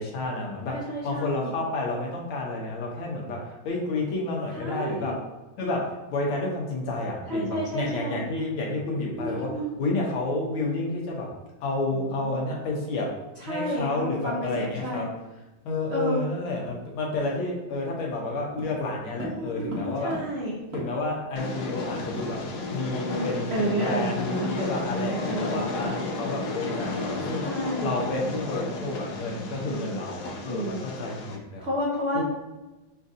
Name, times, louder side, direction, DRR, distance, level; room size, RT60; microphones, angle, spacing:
voice 1, 0.0-3.4 3.6-5.1 5.6-5.8 6.1-9.5 9.8-11.3 11.6-13.1 13.4-15.1 15.7-20.1 20.7-22.4 22.7-27.4 27.8-31.6 32.1-32.2, left 2 dB, 90° left, -1 dB, 1.7 m, -30 dB
voice 2, 0.7-1.5 4.6-5.1 7.3-8.2 9.2-9.9 12.2-12.4 13.5-15.1 15.9-16.2 19.2-20.5 23.1-26.0 27.4-27.9 29.7-30.0 30.5-30.9 31.6-32.2, right 1 dB, 80° right, -6 dB, 0.5 m, -31 dB
sound 1, 18.6-21.2 21.5-21.6 21.8-22.9 23.1-23.3 23.7-23.9, right 2 dB, 55° right, 1.2 m, -40 dB
Train, 21.4-31.4, left 3 dB, 70° left, 0.9 m, -33 dB
5.7 x 2.5 x 2.6 m, 1.1 s
omnidirectional pair, 2.2 m